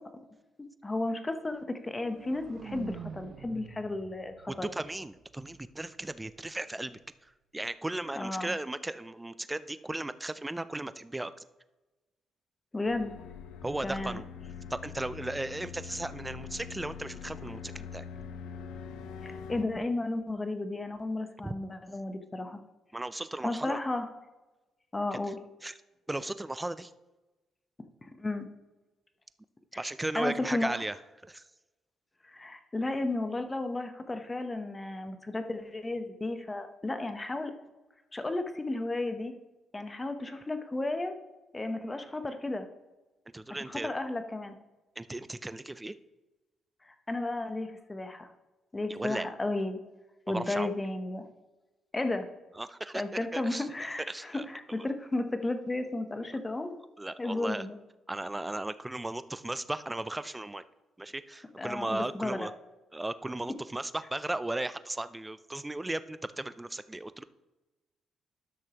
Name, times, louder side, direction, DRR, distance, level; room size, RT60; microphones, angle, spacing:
voice 1, 0.8-4.7 8.2-8.6 12.7-13.1 13.8-14.2 19.2-22.6 23.4-24.1 24.9-25.4 28.0-28.5 29.7-29.8 30.1-30.8 32.2-37.5 38.1-39.3 39.7-41.1 41.5-42.7 43.5-44.5 46.8-48.3 48.7-49.8 50.3-51.2 51.9-52.3 52.9-56.8 57.2-57.8 61.6-62.5, left 2 dB, 20° left, 8 dB, 0.9 m, -33 dB
sound 1, 1.7-5.7, right 7 dB, 60° right, 0.6 m, -46 dB
voice 2, 4.5-11.3 13.6-14.2 14.7-18.0 21.4-21.6 22.9-23.8 25.1-25.2 25.6-25.7 26.1-26.9 29.7-31.0 31.2-31.4 43.3-43.9 45.0-45.9 48.9-49.3 50.3-50.7 52.6-53.0 53.3-53.7 54.1-54.9 57.0-57.7 58.1-60.6 61.0-62.5 62.9-67.2, right 2 dB, 15° right, 14 dB, 0.4 m, -36 dB
sound 2, 12.9-19.6, left 7 dB, 85° left, 0.5 m, -43 dB
12.0 x 6.4 x 3.0 m, 1.1 s
cardioid pair, 90°, 0 cm